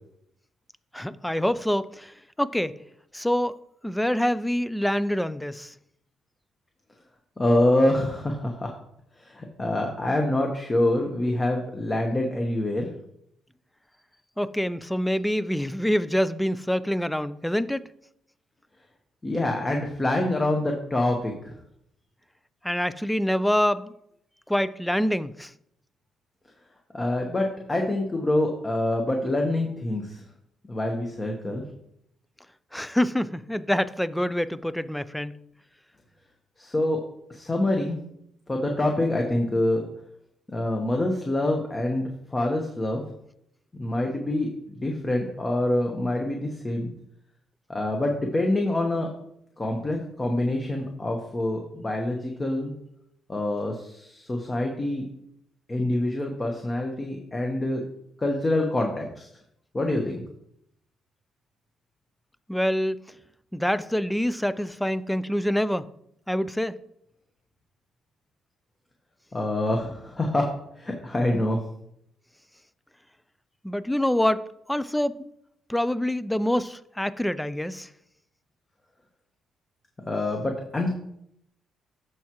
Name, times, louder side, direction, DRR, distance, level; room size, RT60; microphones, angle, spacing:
voice 1, 0.9-2.8 3.1-3.5 3.8-5.7 14.4-17.8 22.6-23.9 24.5-25.5 32.7-35.4 62.5-63.0 63.5-65.9 66.3-66.8 73.6-75.3 75.7-77.9, equal, 5° left, 0.4 m, -26 dB
voice 2, 7.4-8.7 9.2-12.9 19.2-21.5 26.9-30.2 30.7-31.6 36.6-37.0 37.3-38.0 38.5-39.9 40.5-43.0 43.8-46.9 47.7-49.1 49.6-52.7 53.3-55.0 55.7-57.8 58.2-59.3 59.7-60.1 69.3-71.6 80.1-80.9, left 1 dB, 25° left, 1.1 m, -26 dB
13.5 x 4.7 x 3.0 m
cardioid pair, 90°, 0 cm